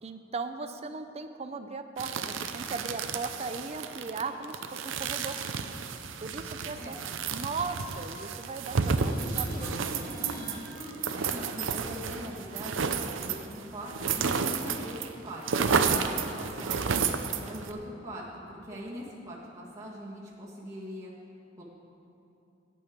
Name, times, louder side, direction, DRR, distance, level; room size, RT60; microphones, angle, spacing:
voice 1, 0.0-5.4 6.2-7.0 7.3-10.2 18.7-18.8, right 4 dB, 35° right, 7 dB, 0.5 m, -38 dB
sound 1, 2.0-15.1 15.3-17.7, right 5 dB, 75° right, 0.6 m, -31 dB
sound 2, 6.3-7.0 7.9-8.3 9.0-9.1 9.4-9.8 10.7-11.0, left 1 dB, 50° left, 1.9 m, -47 dB
sound 3, 6.5-8.6 8.8-10.7 16.5-16.6, equal, 20° left, 2.5 m, -45 dB
voice 2, 11.1-17.0 17.4-21.1 21.6-21.7, equal, 15° right, -7 dB, 1.7 m, -42 dB
11.0 x 5.5 x 8.6 m, 2.9 s
head